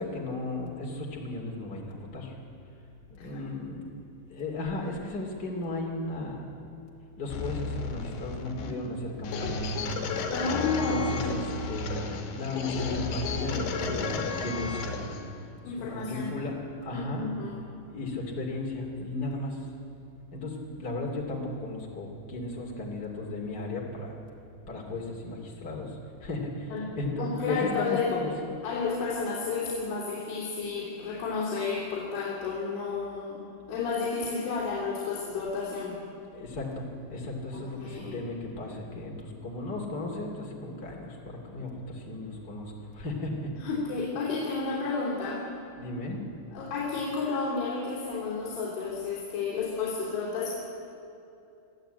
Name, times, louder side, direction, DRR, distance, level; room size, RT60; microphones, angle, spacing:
voice 1, 0.0-2.4 3.1-3.8 4.3-6.4 7.2-9.7 10.9-15.1 15.9-17.3 17.9-19.7 20.3-24.1 24.7-28.3 36.3-43.7 45.8-46.3, left 2 dB, 30° left, -2 dB, 2.1 m, -35 dB
sound 1, 7.3-15.2, left 4 dB, 65° left, 4.0 m, -33 dB
voice 2, 10.3-11.3 15.6-16.3 16.9-17.6 26.7-26.9 27.2-28.1 28.6-33.4 33.7-36.0 37.5-38.2 43.6-45.5 46.5-50.5, left 4 dB, 85° left, -5 dB, 5.8 m, -31 dB
24.5 x 15.0 x 8.9 m, 2.7 s
omnidirectional pair, 5.3 m